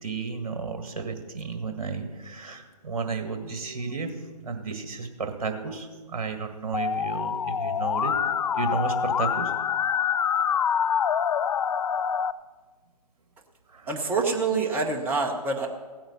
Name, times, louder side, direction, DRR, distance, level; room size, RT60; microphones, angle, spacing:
voice 1, 0.0-8.1 8.5-9.5 13.7-13.9, right 4 dB, 55° right, 6 dB, 1.8 m, -33 dB
Musical instrument, 6.7-12.3, left 8 dB, 60° left, 0.4 m, -26 dB
voice 2, 13.9-15.7, right 4 dB, 10° right, 2 dB, 0.9 m, -26 dB
16.5 x 8.8 x 5.5 m, 1.4 s
figure-of-eight pair, 140°, 21 cm